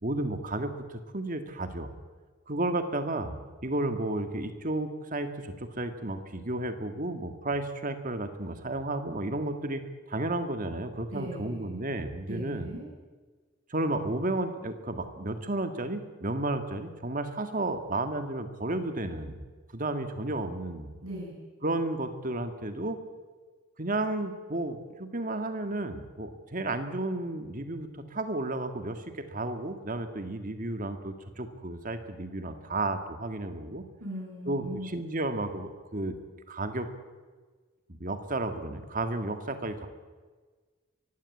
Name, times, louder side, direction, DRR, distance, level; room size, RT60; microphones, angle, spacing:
voice 1, 0.0-1.9 2.5-9.8 10.1-12.7 13.7-19.4 19.7-20.9 21.6-23.0 23.8-33.8 34.5-36.2 36.5-36.9 38.0-39.9, right 2 dB, 40° right, 8 dB, 1.8 m, -32 dB
voice 2, 11.1-11.9 12.3-12.9 21.0-21.4 34.0-35.1, equal, 90° right, -3 dB, 7.9 m, -39 dB
23.0 x 16.0 x 8.5 m, 1.4 s
head